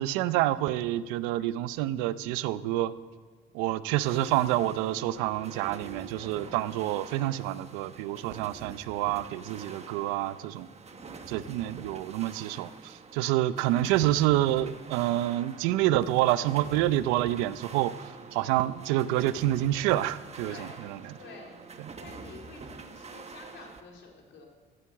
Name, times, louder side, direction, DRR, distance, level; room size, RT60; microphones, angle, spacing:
voice 1, 0.0-2.9 3.5-10.7 11.3-17.9 18.3-21.0, right 14 dB, 90° right, 15 dB, 0.6 m, -28 dB
sound 1, 4.0-23.8, right 4 dB, 35° right, 1.5 m, -46 dB
voice 2, 10.9-11.5 20.4-20.9 21.2-21.6 22.0-24.5, left 4 dB, 70° left, 0 dB, 3.9 m, -49 dB
15.5 x 8.3 x 7.6 m, 1.4 s
supercardioid pair, 75°, 20 cm